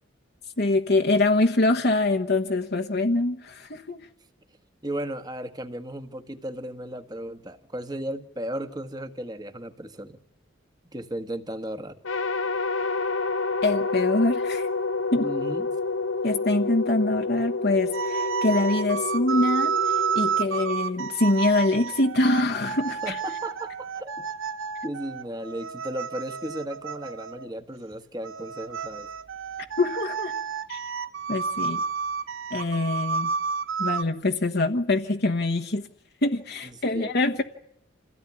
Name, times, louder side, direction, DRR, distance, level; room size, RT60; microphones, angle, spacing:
voice 1, 0.6-4.1 13.6-14.7 15.1-15.3 16.2-23.2 29.8-30.3 30.7-30.8 31.3-31.8 32.5-33.3 33.8-35.9 36.2-37.4, left 2 dB, 50° left, 1.2 m, -24 dB
voice 2, 4.8-10.2 10.9-12.0 15.2-15.7 20.5-20.6 23.0-24.3 24.8-29.1 36.9-37.1, right 1 dB, 20° right, 1.6 m, -35 dB
sound 1, 12.0-21.4, left 3 dB, 70° left, 1.1 m, -29 dB
sound 2, 17.9-27.5 28.2-34.0, right 6 dB, 70° right, 1.1 m, -30 dB
28.0 x 16.5 x 9.9 m
head